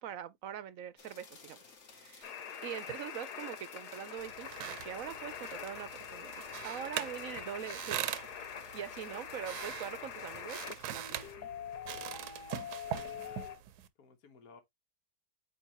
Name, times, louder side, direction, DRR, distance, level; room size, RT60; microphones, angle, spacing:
voice 1, 0.0-1.6 1.9-2.3 2.6-8.1 8.7-11.5, right 10 dB, 65° right, 1.0 m, -43 dB
sound 1, 1.0-11.3, left 5 dB, 50° left, 1.6 m, -56 dB
sound 2, 2.2-13.6, left 8 dB, 90° left, 1.6 m, -45 dB
sound 3, 4.2-13.9, right 11 dB, 85° right, 1.2 m, -42 dB
voice 2, 13.2-13.5 14.0-14.6, left 5 dB, 65° left, 1.7 m, -59 dB
8.6 x 2.9 x 4.2 m
omnidirectional pair, 1.7 m